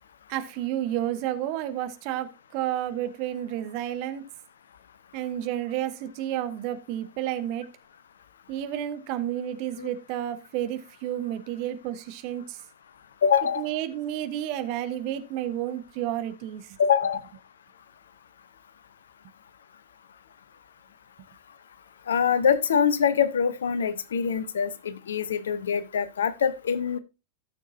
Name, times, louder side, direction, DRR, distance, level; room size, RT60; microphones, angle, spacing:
voice 1, 0.3-4.2 5.1-7.7 8.5-12.6 13.6-16.8, right 12 dB, 45° right, 1.3 m, -31 dB
voice 2, 13.2-13.7 16.8-17.2 22.1-27.0, left 7 dB, 65° left, 0.9 m, -24 dB
16.5 x 6.8 x 2.7 m
figure-of-eight pair, 90°, 0 cm